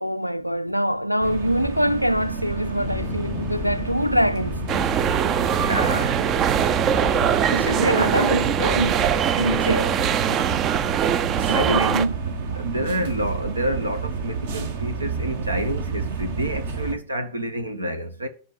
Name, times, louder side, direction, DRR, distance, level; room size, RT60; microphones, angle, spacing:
voice 1, 0.0-4.7 7.5-9.1 9.3-10.0 11.5-12.1, equal, 90° left, 0.5 m, -24 dB
sound 1, 1.2-16.9, right 4 dB, 55° right, 1.3 m, -30 dB
sound 2, 2.8-9.6, left 11 dB, 35° left, 0.5 m, -36 dB
sound 3, 4.7-12.1, right 9 dB, 30° right, 0.5 m, -22 dB
voice 2, 5.4-6.1 11.5-12.0 12.6-18.3, right 1 dB, 80° right, 1.2 m, -28 dB
12.0 x 4.3 x 7.6 m
figure-of-eight pair, 90°, 0 cm